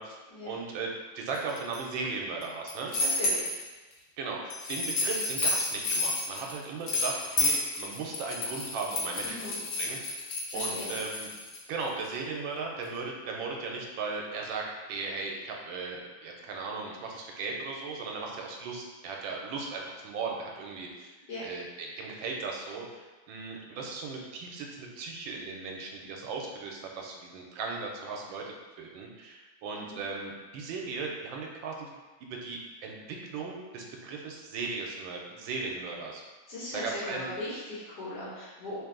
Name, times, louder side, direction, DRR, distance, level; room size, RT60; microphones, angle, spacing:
voice 1, 0.4-2.9 4.2-10.2 10.5-11.3 11.7-14.6 14.9-21.1 21.4-31.9 32.2-36.2 36.7-37.3, right 4 dB, 90° right, 0 dB, 1.4 m, -37 dB
sound 1, 1.3-1.8 2.4-3.6 4.5-11.6, left 3 dB, 85° left, 1.5 m, -30 dB
voice 2, 3.0-3.5 9.2-9.6 10.5-10.9 21.3-21.4 29.7-30.0 36.5-38.8, left 1 dB, 60° left, -8 dB, 1.5 m, -38 dB
3.3 x 2.6 x 3.7 m, 1.3 s
omnidirectional pair, 2.1 m